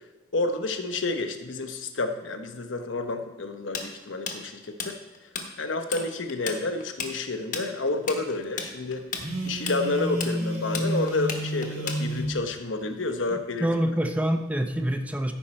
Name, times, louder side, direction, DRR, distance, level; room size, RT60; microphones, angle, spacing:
voice 1, 0.3-5.0 5.6-9.1 9.5-13.7, left 2 dB, 70° left, 7 dB, 0.9 m, -30 dB
Tools, 3.7-5.5 5.7-6.0 6.3-12.4, left 5 dB, 40° left, 1.2 m, -33 dB
Telephone, 9.2-12.3, equal, 55° right, 3.2 m, -30 dB
voice 2, 13.3-15.3, equal, 10° right, 5 dB, 0.7 m, -26 dB
14.5 x 5.5 x 4.3 m, 1.2 s
head